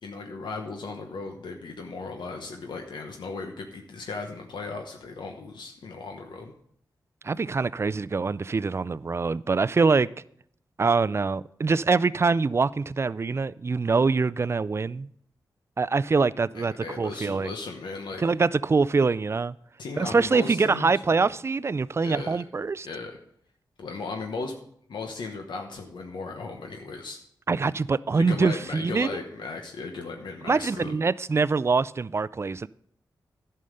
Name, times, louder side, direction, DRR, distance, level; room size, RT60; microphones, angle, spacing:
voice 1, 0.0-6.5 16.5-18.2 19.8-21.3 22.0-22.4 22.8-23.2 23.8-24.5 24.9-27.2 28.2-31.0, left 3 dB, 90° left, 1.0 m, -36 dB
voice 2, 7.2-10.1 10.8-15.1 15.8-17.5 18.2-19.5 20.0-22.9 27.5-29.1 30.4-32.7, right 4 dB, 35° right, 0.3 m, -24 dB
11.0 x 5.6 x 6.5 m
cardioid pair, 65°, 8 cm